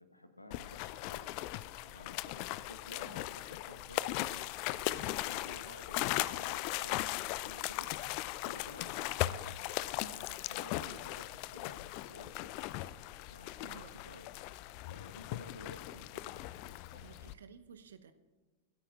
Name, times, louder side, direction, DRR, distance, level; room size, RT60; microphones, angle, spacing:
voice 1, 0.0-1.3 1.8-7.0 7.4-7.9 8.4-9.5 9.9-11.3 11.5-12.5 13.3-14.3 14.8-16.3 16.6-17.1, left 1 dB, 85° left, 8 dB, 1.3 m, -53 dB
sound 1, 0.5-17.3, left 16 dB, 45° left, 0.4 m, -38 dB
voice 2, 13.6-14.2 16.9-18.1, right 7 dB, 65° right, 11 dB, 1.0 m, -54 dB
25.5 x 13.0 x 2.5 m, 1.3 s
figure-of-eight pair, 90°, 0 cm